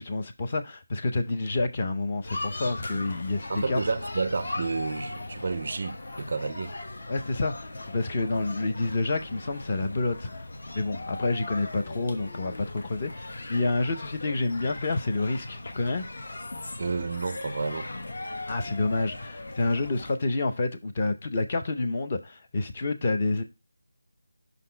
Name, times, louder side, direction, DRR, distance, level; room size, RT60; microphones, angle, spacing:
voice 1, 0.0-3.8 7.1-10.3 10.7-16.0 18.5-23.4, left 2 dB, 20° left, 0.6 m, -28 dB
sound 1, 2.2-20.1, left 2 dB, 45° left, 1.0 m, -39 dB
voice 2, 3.5-6.7 16.8-17.9, right 4 dB, 30° right, 0.4 m, -30 dB
5.8 x 4.1 x 4.3 m
figure-of-eight pair, 180°, 0 cm